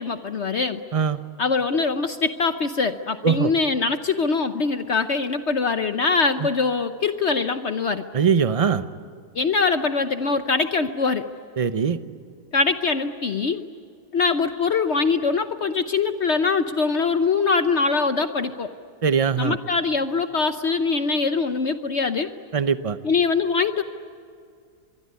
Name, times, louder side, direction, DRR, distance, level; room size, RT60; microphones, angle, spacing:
voice 1, 0.0-0.8 1.4-8.0 9.3-11.3 12.5-13.6 14.1-18.7 19.4-22.3 23.0-23.8, left 4 dB, 50° left, 9 dB, 1.0 m, -23 dB
voice 2, 8.1-8.9 11.6-12.0 19.0-19.6 22.5-23.0, right 6 dB, 35° right, 12 dB, 0.6 m, -21 dB
24.5 x 23.0 x 9.7 m, 2.2 s
omnidirectional pair, 1.7 m